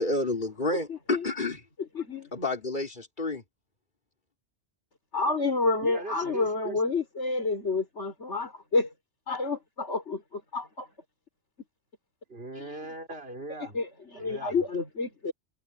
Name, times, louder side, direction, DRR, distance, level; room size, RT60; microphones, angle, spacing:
voice 1, 0.0-1.6 2.3-3.4, left 2 dB, 45° left, 4.2 m, -29 dB
voice 2, 0.9-1.3 1.9-2.3 5.1-8.9 9.3-10.9 13.6-15.3, left 3 dB, 90° left, 4.9 m, -29 dB
voice 3, 5.8-6.8 12.3-13.8 14.1-14.6, right 2 dB, 60° right, 5.3 m, -40 dB
omnidirectional pair, 1.1 m